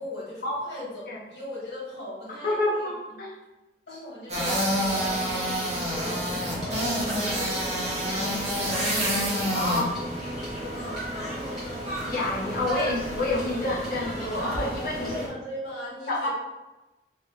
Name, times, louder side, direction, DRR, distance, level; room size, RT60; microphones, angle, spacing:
voice 1, 0.0-0.9 1.1-3.2 3.9-9.8 10.7-11.8 15.0-16.3, left 1 dB, 80° left, -6 dB, 1.4 m, -40 dB
voice 2, 2.4-3.3 9.5-9.9 12.0-15.1 16.1-16.3, left 2 dB, 55° left, -5 dB, 0.7 m, -28 dB
sound 1, 4.3-15.3, equal, 35° right, 0.7 m, -29 dB
sound 2, 6.2-15.3, equal, ahead, 1.2 m, -38 dB
2.8 x 2.3 x 3.5 m, 1.1 s
head